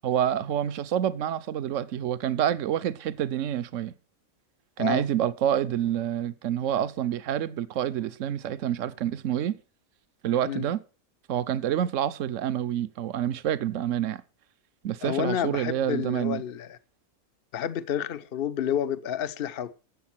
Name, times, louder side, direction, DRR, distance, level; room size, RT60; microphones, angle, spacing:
voice 1, 0.0-3.9 4.8-9.6 10.2-10.8 11.3-14.2 14.8-16.4, right 10 dB, 65° right, 1.1 m, -27 dB
voice 2, 15.0-16.8 17.5-19.7, left 9 dB, 50° left, 1.0 m, -30 dB
14.0 x 8.2 x 5.9 m
omnidirectional pair, 1.5 m